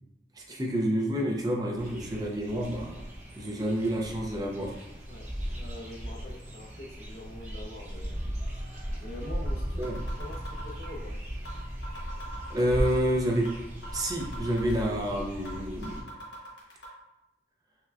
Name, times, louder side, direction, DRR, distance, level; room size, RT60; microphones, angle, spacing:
voice 1, 0.4-3.0 3.3-4.7 9.8-10.0 12.5-13.5 13.9-16.0, equal, 20° right, 0 dB, 0.4 m, -29 dB
sound 1, 1.8-16.0, equal, 40° right, 0.8 m, -37 dB
voice 2, 5.1-8.2 9.0-11.2, left 1 dB, 65° left, -1 dB, 0.7 m, -44 dB
sound 2, 9.5-9.6 9.8-11.0 11.5-11.6 11.8-13.0 13.5-13.6 13.8-15.0 15.5-15.6 15.8-16.9, equal, 90° left, 1.2 m, -43 dB
5.6 x 2.2 x 2.4 m, 0.96 s
head